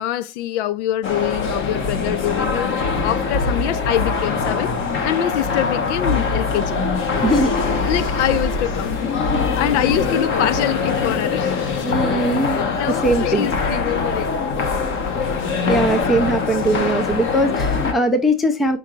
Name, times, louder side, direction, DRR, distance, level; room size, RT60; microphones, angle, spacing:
voice 1, 0.0-4.7 5.0-6.8 7.8-8.9 9.6-14.3 16.0-16.1, left 12 dB, 65° left, 0.6 m, -24 dB
sound 1, 1.0-17.9, left 4 dB, 30° left, 1.2 m, -22 dB
voice 2, 11.8-12.6 12.9-13.5 15.6-18.8, right 1 dB, ahead, 0.3 m, -20 dB
5.6 x 3.9 x 4.5 m
supercardioid pair, 130°, 37 cm